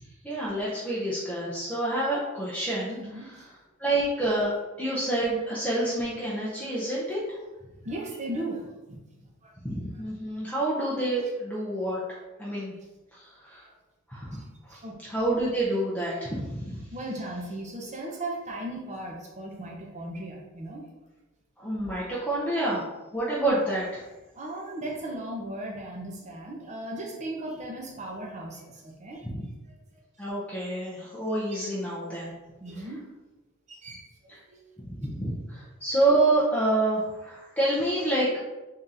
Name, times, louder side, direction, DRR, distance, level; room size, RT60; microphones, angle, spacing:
voice 1, 0.2-3.4 3.8-4.5 4.8-7.4 9.6-12.0 12.4-12.7 13.2-13.6 14.1-14.4 15.1-16.8 21.6-24.0 29.2-29.5 30.2-32.3 34.3-34.4 34.8-38.4, right 1 dB, 5° left, -8 dB, 0.6 m, -28 dB
voice 2, 2.9-3.5 6.6-6.7 7.8-9.5 14.3-14.4 14.7-14.9 16.9-20.8 24.3-29.5 29.9-30.0 31.5-31.6 32.6-33.0 33.7-34.6, right 1 dB, 35° right, 0 dB, 0.7 m, -37 dB
3.7 x 3.5 x 2.7 m, 1.1 s
head